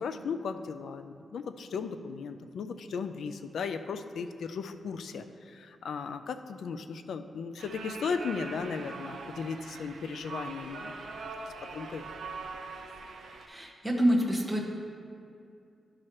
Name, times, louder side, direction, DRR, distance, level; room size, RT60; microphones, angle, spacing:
voice 1, 0.0-11.3 11.7-12.0, left 5 dB, 75° left, 9 dB, 0.4 m, -36 dB
sound 1, 7.6-13.5, right 4 dB, 65° right, 0.6 m, -42 dB
voice 2, 13.5-14.6, equal, 5° right, -3 dB, 0.9 m, -27 dB
11.5 x 4.7 x 2.9 m, 2.4 s
wide cardioid pair, 175°, 0 cm